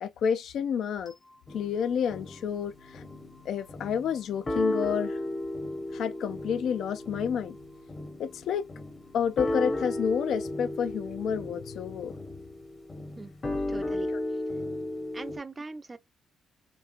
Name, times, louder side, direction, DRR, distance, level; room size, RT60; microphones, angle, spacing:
voice 1, 0.0-1.1 1.5-3.0 3.4-5.2 5.9-7.6 8.2-8.7 9.1-12.1 14.1-14.2, left 7 dB, 70° left, 0.3 m, -30 dB
sound 1, 1.1-12.0, left 4 dB, 50° left, 1.3 m, -57 dB
sound 2, 1.5-2.6 2.9-3.3 3.7-4.1 4.5-15.4, left 1 dB, 30° left, 0.8 m, -34 dB
voice 2, 13.7-14.1 15.1-16.0, right 3 dB, 25° right, 0.4 m, -40 dB
3.0 x 2.5 x 2.4 m
cardioid pair, 90°, 0 cm